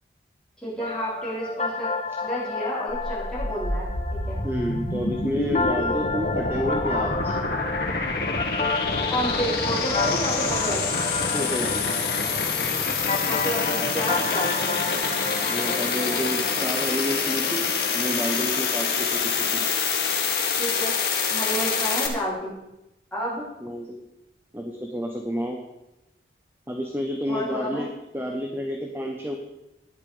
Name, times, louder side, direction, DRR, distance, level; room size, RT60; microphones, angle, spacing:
voice 1, 0.6-1.9 2.2-4.4 9.1-10.9 13.3-14.8 20.6-21.0 21.3-22.6 23.1-23.5 27.3-27.8, equal, 5° left, -8 dB, 4.4 m, -30 dB
sound 1, 0.8-17.1, left 3 dB, 35° left, 0.7 m, -31 dB
sound 2, 2.9-22.1, left 4 dB, 60° left, 1.7 m, -26 dB
voice 2, 4.4-7.3 11.3-11.9 15.5-19.6 23.6-24.0 24.5-25.6 26.7-29.4, equal, 10° right, 2 dB, 0.9 m, -30 dB
11.0 x 9.7 x 5.0 m, 0.94 s
head